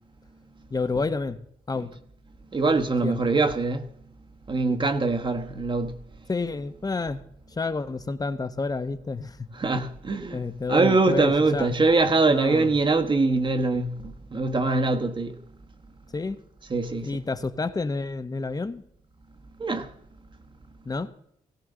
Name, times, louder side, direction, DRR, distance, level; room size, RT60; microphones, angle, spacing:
voice 1, 0.7-1.4 1.7-1.9 3.0-3.2 6.3-7.2 7.5-9.4 10.3-11.7 12.3-12.7 16.1-16.4 17.0-18.8 20.9-21.1, left 3 dB, 25° left, 0.9 m, -29 dB
voice 2, 2.5-3.8 4.5-5.9 9.5-10.4 10.7-13.9 14.3-15.3 16.7-17.2 19.6-19.9, right 3 dB, 35° right, 1.1 m, -23 dB
17.0 x 16.5 x 3.8 m
cardioid pair, 110°, 15 cm